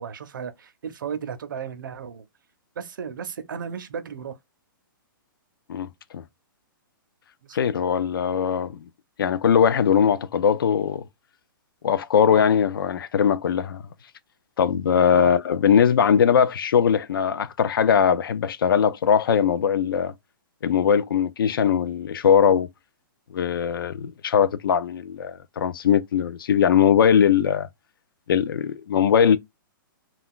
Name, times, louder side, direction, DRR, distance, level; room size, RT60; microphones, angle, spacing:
voice 1, 0.0-2.2 2.8-4.4 7.4-7.6 12.3-12.5 15.1-15.3, right 7 dB, 65° right, 0.5 m, -34 dB
voice 2, 7.5-8.9 9.2-11.0 11.8-13.8 14.6-20.1 20.6-22.7 23.3-27.7 28.3-29.4, left 8 dB, 75° left, 0.4 m, -20 dB
2.3 x 2.3 x 3.6 m
hypercardioid pair, 180°, 12 cm